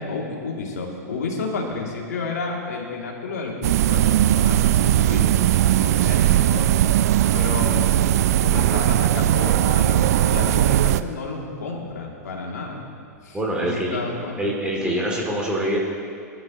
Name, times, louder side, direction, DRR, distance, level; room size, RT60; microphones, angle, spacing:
voice 1, 0.0-5.3 5.8-6.8 7.3-7.9 8.4-12.8 13.2-14.5, left 3 dB, 75° left, -1 dB, 2.8 m, -31 dB
sound 1, 3.6-11.0, right 12 dB, 65° right, 0.5 m, -19 dB
voice 2, 13.3-14.0 14.4-15.8, right 1 dB, 10° right, -3 dB, 2.7 m, -25 dB
21.5 x 12.5 x 3.1 m, 2.4 s
hypercardioid pair, 100°, 9 cm